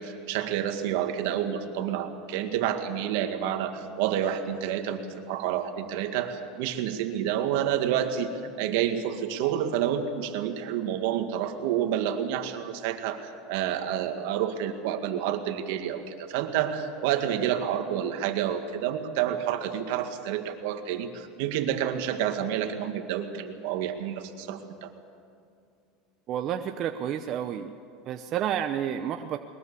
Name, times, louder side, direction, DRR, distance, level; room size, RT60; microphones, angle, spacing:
voice 1, 0.0-8.3 8.6-24.9, right 10 dB, 75° right, 7 dB, 1.9 m, -29 dB
voice 2, 26.3-27.7 28.0-29.4, right 9 dB, 45° right, 7 dB, 0.8 m, -30 dB
21.5 x 21.0 x 6.9 m, 2.4 s
supercardioid pair, 135°, 0 cm